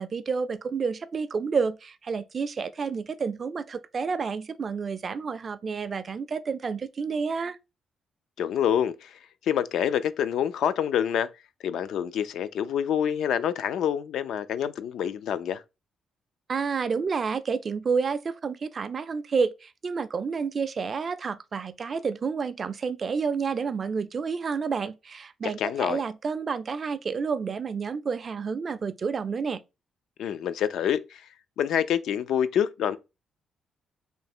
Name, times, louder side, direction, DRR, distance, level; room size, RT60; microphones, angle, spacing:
voice 1, 0.0-7.6 16.5-29.6, right 5 dB, 30° right, 0.3 m, -29 dB
voice 2, 8.4-11.3 11.6-15.6 25.4-26.0 30.2-31.2 31.6-33.0, left 9 dB, 70° left, 0.4 m, -27 dB
3.2 x 2.8 x 4.2 m
cardioid pair, 165°, 0 cm